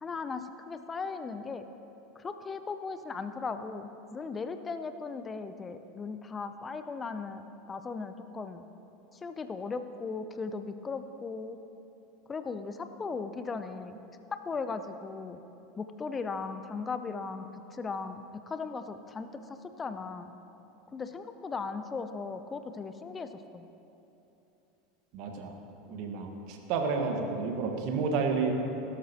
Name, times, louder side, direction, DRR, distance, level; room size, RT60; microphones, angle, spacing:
voice 1, 0.0-1.7 2.2-7.4 7.7-8.6 9.1-11.6 12.3-14.0 14.3-15.4 15.8-20.3 20.9-23.7, left 4 dB, 25° left, 9 dB, 0.6 m, -37 dB
voice 2, 25.1-25.5 25.8-28.5, right 5 dB, 55° right, 3 dB, 1.6 m, -30 dB
17.0 x 13.0 x 3.0 m, 3.0 s
figure-of-eight pair, 80°, 0 cm